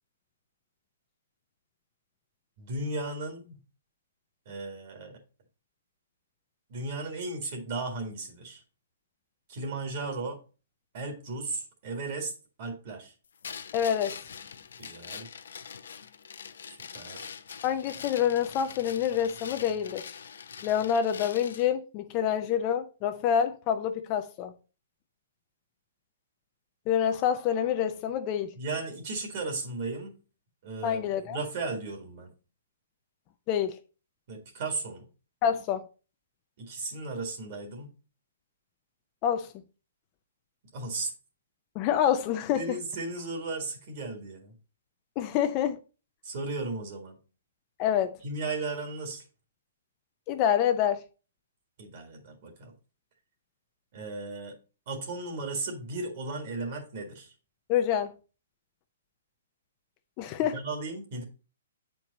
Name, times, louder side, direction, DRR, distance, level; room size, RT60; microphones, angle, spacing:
voice 1, 2.6-3.6 4.5-5.2 6.7-8.6 9.5-10.4 10.9-12.3 12.6-13.1 14.8-15.3 16.7-17.4 28.6-30.1 30.6-32.3 34.3-35.1 36.6-37.9 40.7-41.1 42.6-44.5 46.2-47.2 48.2-49.2 51.8-52.7 53.9-54.6 54.9-57.3 60.4-61.2, right 3 dB, 45° right, 1.7 m, -35 dB
sound 1, 13.4-21.7, left 7 dB, 75° left, 0.6 m, -43 dB
voice 2, 13.7-14.2 17.6-20.1 20.6-24.5 26.9-28.5 30.8-31.4 33.5-33.8 35.4-35.8 39.2-39.5 41.8-42.8 45.2-45.8 47.8-48.2 50.3-51.0 57.7-58.1 60.2-60.6, left 9 dB, 25° left, 0.4 m, -27 dB
7.7 x 4.5 x 4.0 m
hypercardioid pair, 160°, 0 cm